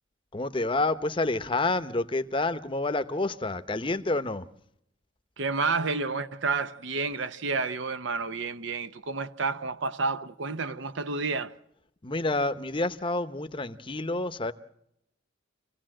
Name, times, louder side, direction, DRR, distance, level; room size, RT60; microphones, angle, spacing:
voice 1, 0.3-4.5 12.0-14.5, left 2 dB, 25° left, 0.8 m, -28 dB
voice 2, 5.4-11.5, right 4 dB, 70° right, 0.7 m, -30 dB
27.0 x 16.5 x 7.6 m
head